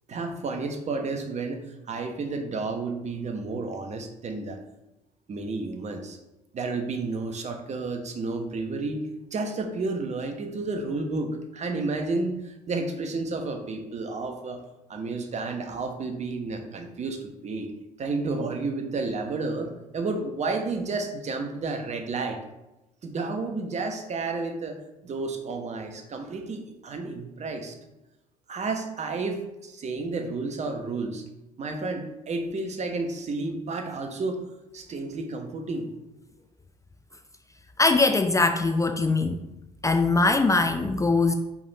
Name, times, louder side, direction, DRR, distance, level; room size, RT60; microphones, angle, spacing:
voice 1, 0.1-1.6 1.9-4.6 5.3-6.2 6.5-9.0 9.3-14.6 14.9-17.2 17.4-17.7 18.0-22.4 23.0-24.8 25.0-27.8 28.5-31.2 31.6-34.4 34.7-35.9, right 3 dB, 40° right, 5 dB, 1.1 m, -31 dB
voice 2, 37.8-39.5 39.8-41.3, left 3 dB, 15° left, 8 dB, 0.5 m, -22 dB
5.2 x 5.1 x 4.0 m, 0.94 s
figure-of-eight pair, 55°, 18 cm